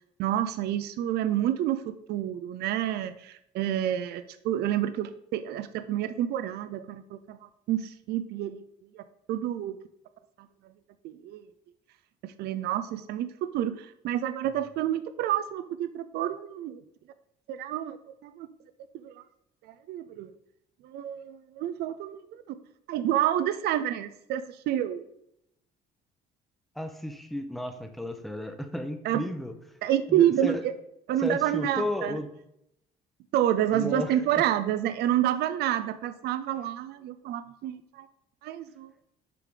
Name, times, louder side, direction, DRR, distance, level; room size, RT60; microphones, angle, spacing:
voice 1, 0.2-7.4 7.7-8.6 8.9-9.8 11.0-11.4 12.2-16.8 17.5-18.0 18.2-18.5 19.0-19.1 19.6-20.3 20.8-22.4 22.9-25.0 29.0-29.2 29.8-30.7 31.1-32.2 33.3-38.1 38.4-38.9, right 11 dB, 75° right, 12 dB, 0.5 m, -29 dB
voice 2, 26.8-29.5 30.1-30.6 31.2-32.3 33.7-34.5, left 1 dB, ahead, 7 dB, 0.8 m, -33 dB
6.7 x 3.8 x 4.8 m, 0.79 s
cardioid pair, 110°, 17 cm